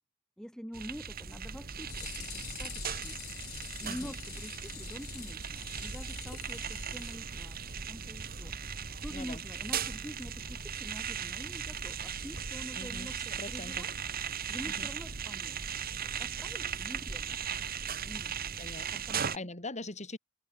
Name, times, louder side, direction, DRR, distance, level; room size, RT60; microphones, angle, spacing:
voice 1, 0.4-3.2 3.8-7.6 7.9-8.5 9.0-13.2 13.5-13.9 14.5-15.6 16.0-17.4 18.0-18.4 19.1-19.5, equal, 5° left, 4.2 m, -46 dB
sound 1, 0.7-19.4, right 7 dB, 45° right, 1.8 m, -38 dB
sound 2, 1.8-7.9 8.2-8.3 8.6-8.7 9.0-9.2 9.4-9.5, left 16 dB, 90° left, 1.3 m, -47 dB
voice 2, 9.1-9.4 12.7-13.9 14.6-14.9 18.6-20.2, left 2 dB, 35° left, 5.4 m, -43 dB
head